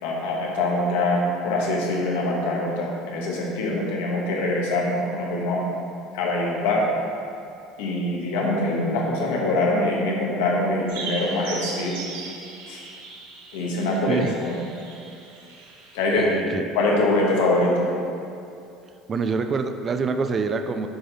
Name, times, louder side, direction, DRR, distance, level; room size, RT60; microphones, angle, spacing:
voice 1, 0.0-5.7 6.1-6.9 7.8-11.9 12.7-12.8 13.5-14.6 15.9-16.4 16.7-17.9, left 2 dB, 85° left, -2 dB, 1.2 m, -24 dB
sound 1, 10.9-16.0, right 3 dB, 85° right, 1.0 m, -38 dB
voice 2, 16.1-16.6 19.1-20.9, right 4 dB, 35° right, 8 dB, 0.3 m, -26 dB
6.8 x 3.8 x 4.0 m, 2.5 s
supercardioid pair, 105°, 0 cm